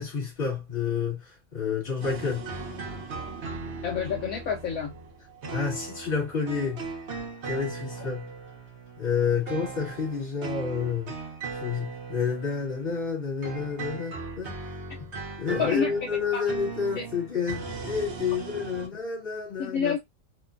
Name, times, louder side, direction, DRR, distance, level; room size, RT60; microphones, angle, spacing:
voice 1, 0.0-2.4 5.5-6.8 7.4-8.3 9.0-11.1 11.5-14.6 15.4-19.9, left 6 dB, 40° left, 1.5 m, -29 dB
sound 1, 2.0-13.2 13.4-18.9, right 4 dB, 55° right, 0.9 m, -38 dB
voice 2, 3.8-4.9 15.6-15.9 16.3-16.4 17.0-17.1 19.6-20.0, left 6 dB, 75° left, 1.0 m, -28 dB
2.9 x 2.2 x 2.3 m
omnidirectional pair, 1.5 m